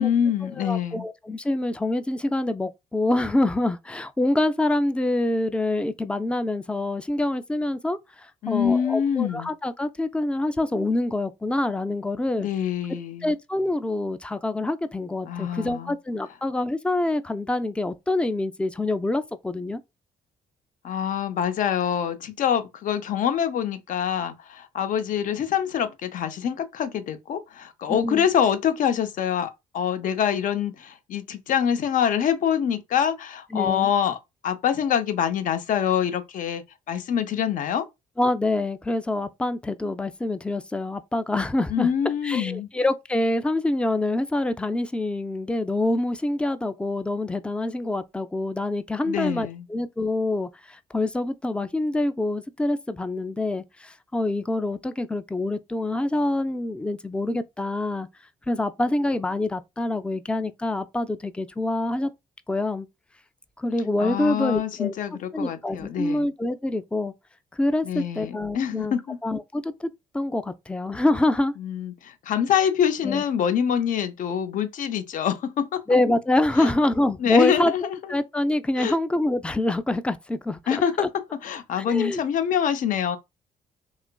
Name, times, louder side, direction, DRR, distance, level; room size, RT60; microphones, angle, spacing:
voice 1, 0.0-1.1 8.4-9.5 12.4-13.3 15.3-15.9 20.8-34.2 34.4-37.8 41.7-42.7 49.0-49.6 64.0-66.3 67.8-69.2 71.6-75.8 76.6-76.7 77.2-78.0 78.8-79.0 80.7-81.1 81.4-83.2, left 8 dB, 60° left, 0.5 m, -25 dB
voice 2, 0.6-12.5 13.2-19.8 27.9-28.3 33.5-33.9 38.2-41.9 42.2-58.1 58.5-62.1 62.5-62.9 63.6-64.9 65.3-67.1 67.5-68.9 69.2-69.9 70.1-71.5 73.0-73.2 75.9-77.7 78.1-80.6 81.8-82.2, left 2 dB, 5° left, 0.3 m, -26 dB
2.9 x 2.4 x 2.2 m
supercardioid pair, 65°, 15 cm